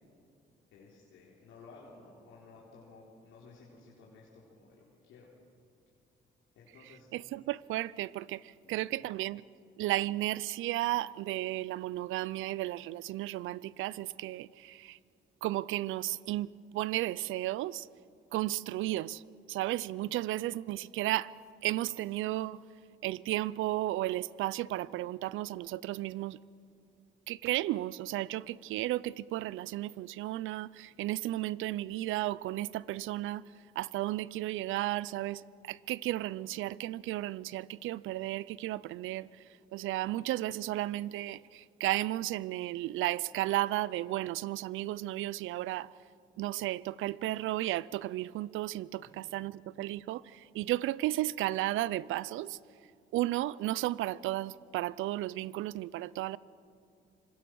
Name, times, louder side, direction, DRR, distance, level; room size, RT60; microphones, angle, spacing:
voice 1, 0.7-5.3 6.6-7.1 8.6-9.0 49.0-49.3, left 3 dB, 85° left, 3.8 m, -55 dB
voice 2, 7.1-8.4 8.7-9.4 9.8-15.0 15.4-17.9 18.3-19.2 19.5-21.3 21.6-22.6 23.0-26.4 27.3-33.4 33.8-35.4 35.7-39.3 39.7-45.9 46.4-52.6 53.1-56.4, right 16 dB, 85° right, 0.5 m, -34 dB
26.0 x 21.5 x 6.3 m
cardioid pair, 90°, 20 cm